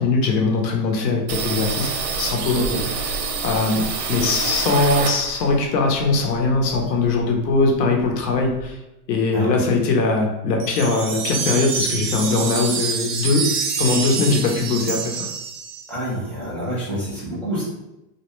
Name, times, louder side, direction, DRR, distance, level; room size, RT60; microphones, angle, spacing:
voice 1, 0.0-3.2 3.4-8.8 9.1-13.5 13.8-15.3, left 3 dB, 90° left, 1 dB, 0.8 m, -21 dB
sound 1, 1.3-5.6 6.0-7.3 7.6-7.7 8.0-8.7, right 5 dB, 85° right, 0.7 m, -27 dB
sound 2, 10.6-16.0, right 6 dB, 50° right, 0.4 m, -26 dB
voice 2, 15.9-17.6, equal, ahead, -10 dB, 0.5 m, -27 dB
2.3 x 2.1 x 3.0 m, 0.93 s
supercardioid pair, 155°, 48 cm